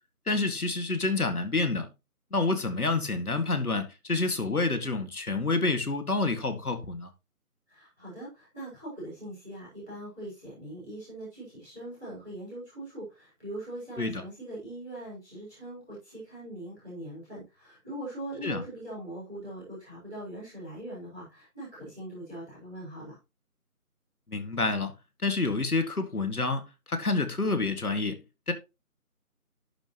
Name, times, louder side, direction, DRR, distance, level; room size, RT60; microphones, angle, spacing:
voice 1, 0.3-1.9 2.3-7.1 14.0-14.2 18.4-18.6 24.3-24.9 25.2-28.2 28.5-28.6, left 3 dB, 70° left, 2.0 m, -28 dB
voice 2, 7.7-23.1, right 1 dB, ahead, 1.3 m, -41 dB
11.5 x 7.1 x 3.0 m
figure-of-eight pair, 165°, 45 cm